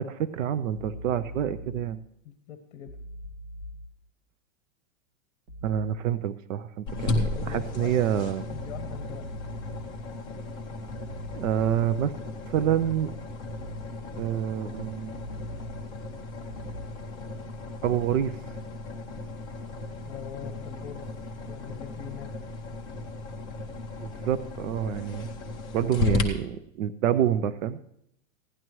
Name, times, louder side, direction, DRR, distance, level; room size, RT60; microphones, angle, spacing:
voice 1, 0.0-2.0 5.6-8.5 11.3-12.1 12.5-13.1 14.2-15.1 17.8-18.4 24.0-25.3 25.7-27.8, right 10 dB, 70° right, 13 dB, 0.7 m, -27 dB
sound 1, 0.7-1.8 2.9-3.8 5.5-5.8 7.1-7.8 8.5-9.8 10.9-11.8 13.5-13.8 15.1-15.8 16.5-16.9, equal, 45° right, 1.6 m, -41 dB
voice 2, 2.2-3.0 7.3-8.0 8.5-9.3 20.0-21.1 21.5-22.3, left 9 dB, 55° left, 8 dB, 1.1 m, -42 dB
sound 2, 6.9-26.2, left 2 dB, 10° left, 0.6 m, -35 dB
16.0 x 11.0 x 3.1 m, 0.74 s
supercardioid pair, 175°, 40 cm